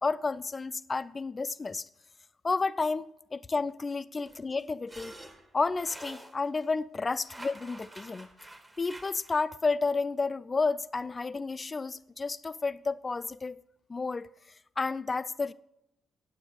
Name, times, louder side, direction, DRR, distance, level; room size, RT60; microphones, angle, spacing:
voice 1, 0.0-1.9 2.4-3.1 3.3-5.2 5.5-8.3 8.8-13.6 13.9-14.3 14.8-15.5, left 4 dB, 35° left, 0.4 m, -31 dB
sound 1, 4.3-6.7 7.2-9.4, right 1 dB, 20° right, 1.6 m, -48 dB
9.5 x 8.0 x 6.3 m
hypercardioid pair, 45°, 0 cm